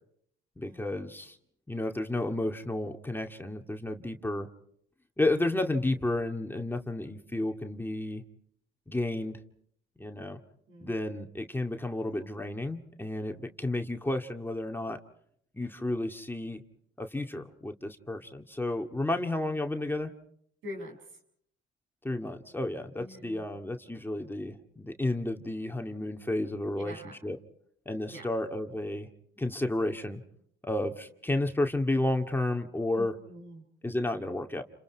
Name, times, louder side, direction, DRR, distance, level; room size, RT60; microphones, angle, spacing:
voice 1, 0.6-1.4 1.7-4.5 5.2-8.2 8.9-9.4 10.0-10.4 10.8-15.0 15.5-16.6 17.0-20.1 22.0-27.4 27.9-29.1 29.4-30.2 30.6-33.1 33.8-34.6, left 2 dB, 10° left, 4 dB, 2.2 m, -32 dB
voice 2, 20.6-21.2 23.0-23.4 26.7-27.2 28.1-28.3 32.9-33.7, left 1 dB, 75° right, 1 dB, 7.4 m, -44 dB
30.0 x 27.0 x 4.7 m, 0.69 s
cardioid pair, 75°, 20 cm